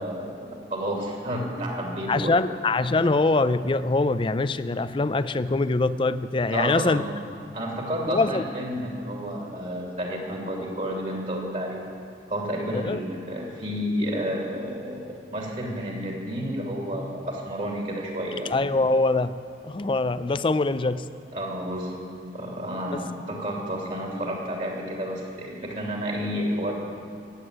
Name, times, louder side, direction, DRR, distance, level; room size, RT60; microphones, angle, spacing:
voice 1, 0.0-2.3 6.5-7.1 7.5-11.8 12.3-15.0 15.3-18.5 21.3-22.0 22.3-26.7, equal, 45° right, -1 dB, 2.7 m, -30 dB
voice 2, 2.1-7.0 8.1-8.4 12.7-13.0 18.5-19.4 19.6-21.1 22.9-23.0, left 3 dB, 30° left, 14 dB, 0.4 m, -23 dB
15.5 x 8.3 x 9.5 m, 2.3 s
head